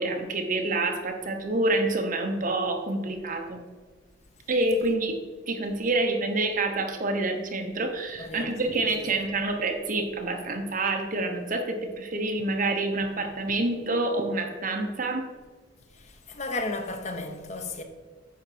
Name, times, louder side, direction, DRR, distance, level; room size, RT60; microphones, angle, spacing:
voice 1, 0.0-3.6 4.5-5.1 5.5-15.2, right 2 dB, 40° right, 0.9 m, -27 dB
voice 2, 8.2-8.5 9.1-9.2 16.3-17.8, left 2 dB, 35° left, 0.7 m, -33 dB
9.4 x 4.0 x 5.8 m
head